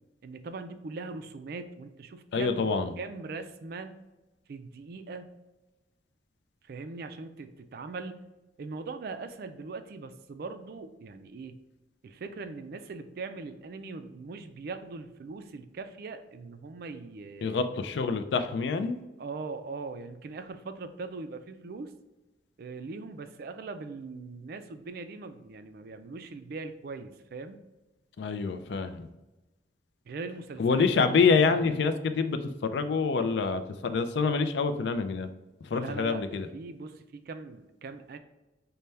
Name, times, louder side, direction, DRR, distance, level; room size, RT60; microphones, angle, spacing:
voice 1, 0.2-2.7 3.0-4.0 4.5-5.3 6.6-8.2 8.6-11.6 12.0-17.7 19.2-21.9 22.6-27.6 30.1-31.7 35.7-38.2, right 3 dB, 55° right, 8 dB, 0.3 m, -41 dB
voice 2, 2.3-2.9 17.4-19.0 28.2-29.1 30.6-35.3 35.6-36.5, left 5 dB, 65° left, 10 dB, 0.3 m, -26 dB
5.4 x 2.2 x 3.2 m, 1.0 s
head